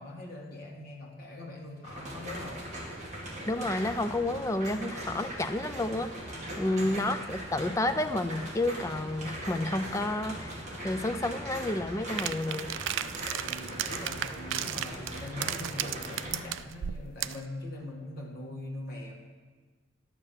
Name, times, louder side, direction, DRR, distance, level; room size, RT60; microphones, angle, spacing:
voice 1, 0.0-2.8 6.6-7.0 13.1-19.1, left 1 dB, 45° left, -1 dB, 1.9 m, -42 dB
sound 1, 1.8-16.4, right 1 dB, 35° right, 2.3 m, -40 dB
voice 2, 3.5-6.1 6.6-10.6 10.8-12.7, left 1 dB, 15° left, 8 dB, 0.4 m, -30 dB
sound 2, 12.2-17.5, right 11 dB, 60° right, 0.3 m, -35 dB
11.0 x 6.7 x 7.3 m, 1.4 s
head